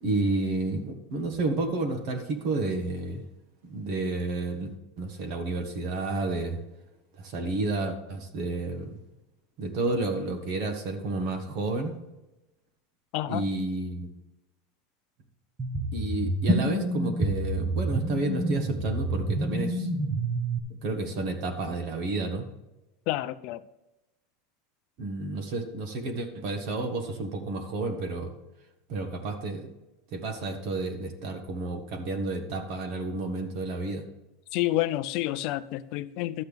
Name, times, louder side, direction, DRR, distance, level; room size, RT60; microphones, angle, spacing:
voice 1, 0.0-3.2 3.6-4.7 5.0-6.6 7.2-9.0 9.6-11.9 13.3-14.1 15.9-19.9 20.8-22.5 25.0-28.3 28.9-29.7 30.1-34.0, right 2 dB, 40° right, 6 dB, 1.4 m, -31 dB
voice 2, 13.1-13.5 23.1-23.6 34.5-36.4, left 15 dB, 40° left, 12 dB, 0.5 m, -29 dB
sound 1, 15.6-20.6, right 1 dB, 15° right, 0.9 m, -28 dB
12.0 x 8.0 x 3.5 m, 0.97 s
supercardioid pair, 180°, 0 cm